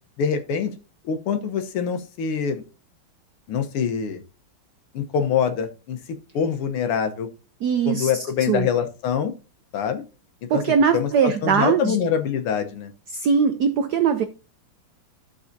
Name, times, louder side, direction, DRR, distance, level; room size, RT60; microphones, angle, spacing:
voice 1, 0.2-0.7 1.0-2.6 3.5-4.2 4.9-6.0 6.3-7.3 7.9-9.3 9.7-10.0 10.5-10.6 10.9-12.9, left 7 dB, 85° left, 1.9 m, -24 dB
voice 2, 7.6-8.7 10.5-12.1 13.1-14.2, right 6 dB, 85° right, 0.8 m, -21 dB
14.0 x 4.7 x 2.7 m
omnidirectional pair, 2.4 m